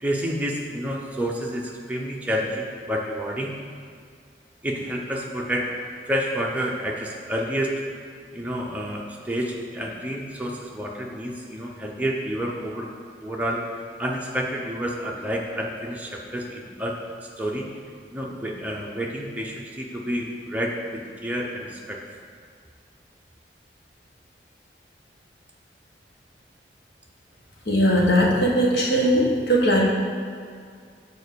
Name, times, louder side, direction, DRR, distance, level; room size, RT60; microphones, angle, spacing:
voice 1, 0.0-3.5 4.6-5.7 6.1-7.7 8.3-12.9 13.2-13.6 14.0-17.0 17.4-17.7 18.1-22.0, equal, 10° right, -2 dB, 0.8 m, -29 dB
voice 2, 27.7-29.8, equal, 70° left, -3 dB, 1.4 m, -19 dB
7.0 x 4.5 x 6.8 m, 2.2 s
head